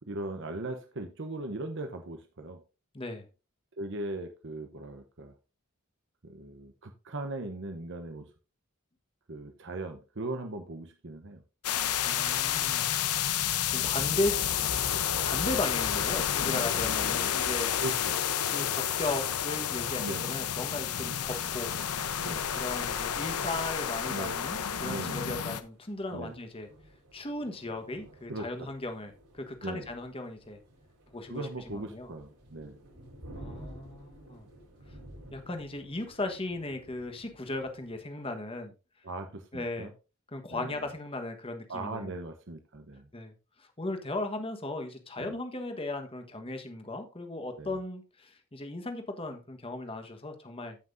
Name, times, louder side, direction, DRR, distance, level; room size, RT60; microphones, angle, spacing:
voice 1, 0.0-2.6 3.8-5.3 6.2-8.3 9.3-11.4 17.8-18.2 20.0-20.3 20.9-21.1 22.2-22.5 24.1-24.4 24.8-25.2 26.1-26.3 28.3-28.7 29.6-29.9 31.3-32.8 39.0-39.9 40.5-40.9 41.7-43.1 45.2-45.3 47.6-47.8, right 2 dB, 55° right, 0.9 m, -39 dB
voice 2, 2.9-3.3 12.0-12.9 13.7-14.3 15.2-17.7 18.5-21.7 22.5-26.7 27.1-30.6 31.1-31.4 31.9-32.1 33.3-34.5 35.3-38.7 39.5-39.9 40.3-42.1 43.1-50.8, left 2 dB, 25° left, 1.3 m, -36 dB
sound 1, 11.6-25.6, left 9 dB, 85° left, 0.8 m, -30 dB
sound 2, 25.7-38.0, right 1 dB, 80° right, 4.2 m, -52 dB
15.0 x 5.9 x 2.6 m
head